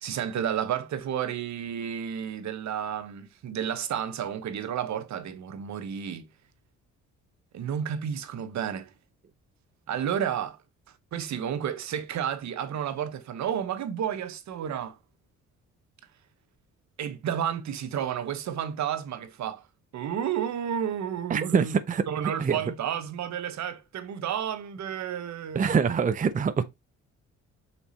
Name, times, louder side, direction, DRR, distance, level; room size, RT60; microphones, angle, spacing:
voice 1, 0.0-6.3 7.5-8.9 9.9-10.6 11.1-15.0 17.0-19.6 19.9-21.8 22.1-25.6, right 9 dB, 65° right, 1.1 m, -31 dB
voice 2, 21.3-22.1 22.4-22.6 25.5-26.6, right 6 dB, 25° right, 0.6 m, -24 dB
5.8 x 4.1 x 4.1 m
cardioid pair, 90°, 30 cm